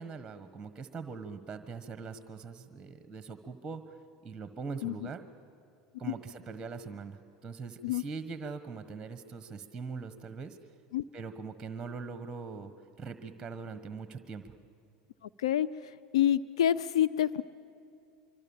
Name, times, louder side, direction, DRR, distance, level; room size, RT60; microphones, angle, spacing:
voice 1, 0.0-5.3 6.0-10.6 11.1-12.7 13.0-14.6, right 4 dB, 15° right, 10 dB, 1.4 m, -42 dB
voice 2, 15.2-15.7 16.1-17.4, left 11 dB, 80° left, 16 dB, 0.5 m, -27 dB
25.0 x 24.0 x 7.3 m, 2.5 s
hypercardioid pair, 95°, 3 cm